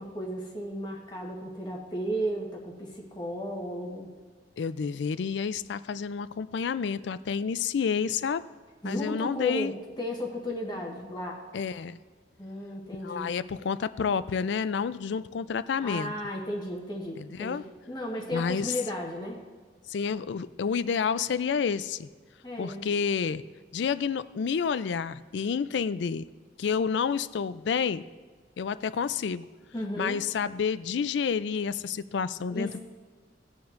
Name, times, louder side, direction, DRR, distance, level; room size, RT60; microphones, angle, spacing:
voice 1, 0.0-4.1 8.8-11.4 12.4-13.3 15.8-19.4 22.4-22.9 29.7-30.2 32.5-32.8, equal, 25° left, -1 dB, 1.2 m, -34 dB
voice 2, 4.6-8.4 8.8-9.7 11.5-12.0 12.9-16.1 17.2-17.6 18.3-18.7 19.9-22.1 22.6-23.4 23.7-26.3 26.6-28.0 28.6-29.5 30.0-32.8, left 6 dB, 70° left, 15 dB, 0.4 m, -29 dB
18.0 x 7.0 x 2.5 m, 1.5 s
head